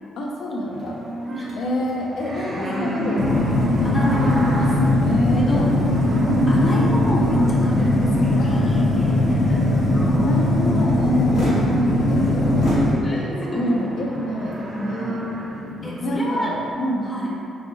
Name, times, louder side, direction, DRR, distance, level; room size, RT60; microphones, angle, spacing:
voice 1, 0.2-1.0 1.6-3.3 3.6-3.9 5.0-5.7 6.2-6.6 8.4-9.4 10.1-15.2 16.0-16.5 16.8-17.1, equal, 70° left, -1 dB, 0.6 m, -27 dB
sound 1, 0.6-16.7, equal, 50° right, 0.7 m, -33 dB
voice 2, 1.3-1.6 2.6-3.1 3.8-4.7 5.3-5.7 6.5-8.3 9.5-9.6 12.8-13.6 15.8-16.6 17.0-17.3, equal, 30° left, -4 dB, 0.7 m, -27 dB
sound 2, 2.8-13.7, left 1 dB, ahead, 0.3 m, -32 dB
sound 3, 3.1-12.9, left 1 dB, 85° left, 1.4 m, -20 dB
4.6 x 2.1 x 3.0 m, 2.6 s
cardioid pair, 90°, 0 cm